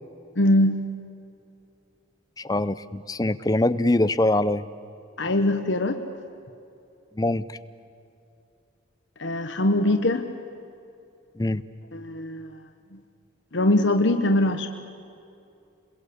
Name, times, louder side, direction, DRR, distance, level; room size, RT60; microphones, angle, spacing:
voice 1, 0.4-0.8 5.2-6.0 9.2-10.3 11.9-12.5 13.5-14.7, left 1 dB, 70° left, 6 dB, 1.1 m, -22 dB
voice 2, 2.4-4.7 7.2-7.5 11.4-11.6, left 1 dB, 20° left, 14 dB, 0.5 m, -23 dB
28.5 x 22.0 x 8.5 m, 2.6 s
head